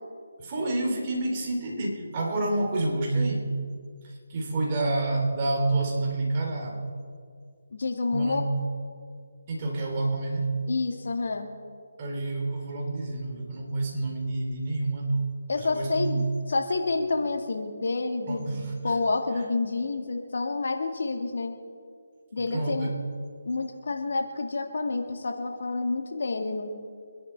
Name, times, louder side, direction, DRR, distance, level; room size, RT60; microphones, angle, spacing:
voice 1, 0.4-3.5 4.0-6.8 8.1-8.6 9.5-10.5 12.0-15.2 15.6-16.2 18.3-18.9 22.4-23.0, right 2 dB, 30° right, 0 dB, 3.4 m, -28 dB
voice 2, 7.7-8.4 10.7-11.5 15.5-21.5 22.3-22.9 23.5-26.7, left 3 dB, 65° left, 4 dB, 1.9 m, -29 dB
25.5 x 11.0 x 4.6 m, 2.2 s
figure-of-eight pair, 155°, 0 cm